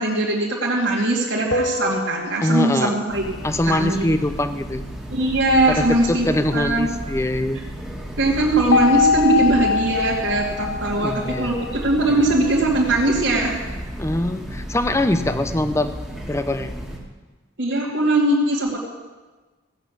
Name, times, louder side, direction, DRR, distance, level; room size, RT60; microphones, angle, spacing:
voice 1, 0.0-3.2 3.7-4.2 5.1-6.9 8.2-13.6 17.6-18.8, right 2 dB, 75° right, -7 dB, 2.6 m, -20 dB
sound 1, 1.5-3.0 8.7-12.1, left 6 dB, 70° left, 1.1 m, -23 dB
voice 2, 2.4-3.0 3.4-4.8 5.7-7.6 11.0-11.5 14.0-15.9 16.3-16.7, left 1 dB, 15° left, 10 dB, 0.7 m, -23 dB
Train, 3.1-17.0, equal, ahead, 1.9 m, -33 dB
16.5 x 7.9 x 8.5 m, 1.3 s
head